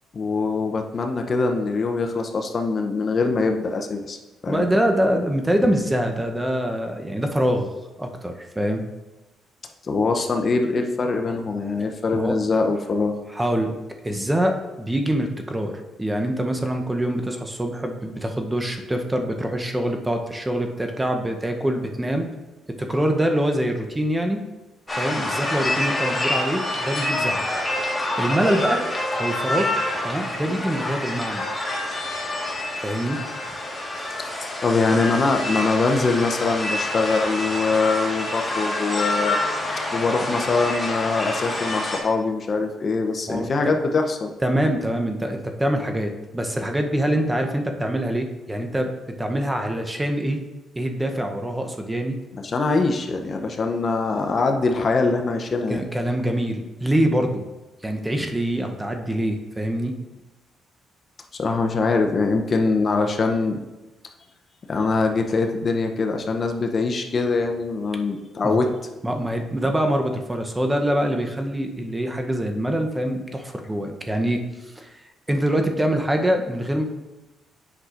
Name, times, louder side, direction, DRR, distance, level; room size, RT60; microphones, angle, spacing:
voice 1, 0.1-4.2 4.4-4.7 9.8-13.2 30.4-30.5 34.2-34.3 34.6-39.4 39.9-44.3 52.3-55.8 61.4-63.6 64.7-68.7, left 3 dB, 40° left, 4 dB, 0.6 m, -23 dB
voice 2, 4.5-7.7 8.0-8.8 12.1-12.3 13.3-13.8 14.0-22.3 22.8-24.4 25.0-27.4 28.2-28.8 29.2-29.7 30.0-31.4 32.8-33.2 43.3-43.7 44.4-48.9 49.2-50.4 50.8-52.2 55.7-57.4 57.8-59.9 68.4-68.6 69.0-74.4 74.8-74.9 75.3-76.8, right 1 dB, 15° right, 4 dB, 0.7 m, -24 dB
sound 1, 24.9-42.0, left 1 dB, 15° left, 1.5 m, -27 dB
8.1 x 5.7 x 2.5 m, 1.1 s
cardioid pair, 90°, 0 cm